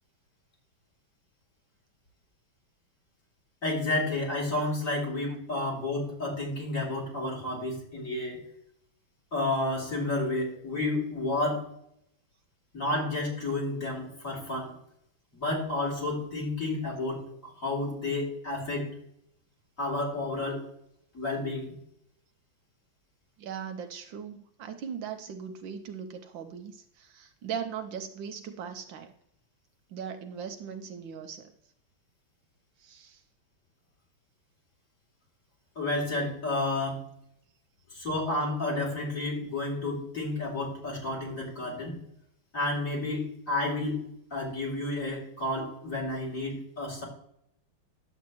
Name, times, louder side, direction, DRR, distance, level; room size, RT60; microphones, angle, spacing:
voice 1, 3.6-8.4 9.3-11.6 12.7-14.7 15.4-18.9 19.8-20.6 21.1-21.6 35.7-37.0 37.9-42.0 42.5-44.0 44.3-47.0, left 2 dB, 40° left, -4 dB, 3.4 m, -31 dB
voice 2, 23.4-29.1 29.9-31.5 32.8-33.2, right 7 dB, 75° right, 6 dB, 1.4 m, -39 dB
10.0 x 7.7 x 3.0 m, 0.74 s
omnidirectional pair, 2.3 m